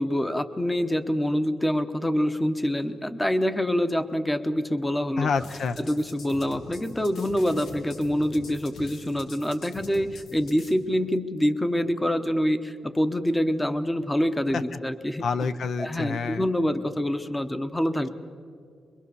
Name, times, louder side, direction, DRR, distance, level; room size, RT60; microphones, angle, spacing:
voice 1, 0.0-5.3 5.8-15.2 15.8-18.1, equal, 10° left, 10 dB, 0.9 m, -26 dB
voice 2, 5.2-5.8 14.5-14.6 15.2-16.4, left 5 dB, 60° left, 11 dB, 0.7 m, -27 dB
sound 1, 5.3-10.7, left 2 dB, 85° left, 2.4 m, -44 dB
25.0 x 22.5 x 6.9 m, 2.3 s
wide cardioid pair, 155°, 0 cm